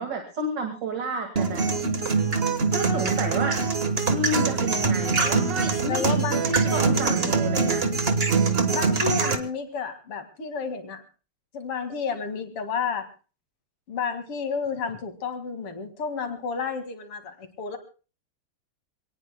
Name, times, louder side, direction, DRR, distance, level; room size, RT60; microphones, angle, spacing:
voice 1, 0.0-1.6 2.7-3.6 4.1-6.1 6.7-7.8, right 2 dB, 55° right, 4 dB, 2.6 m, -30 dB
sound 1, 1.4-9.3, right 4 dB, 30° right, 1.3 m, -23 dB
voice 2, 5.9-7.4 8.7-11.0 11.5-13.1 13.9-17.8, left 5 dB, 90° left, 7 dB, 3.0 m, -31 dB
26.5 x 18.5 x 2.2 m, 0.35 s
omnidirectional pair, 2.4 m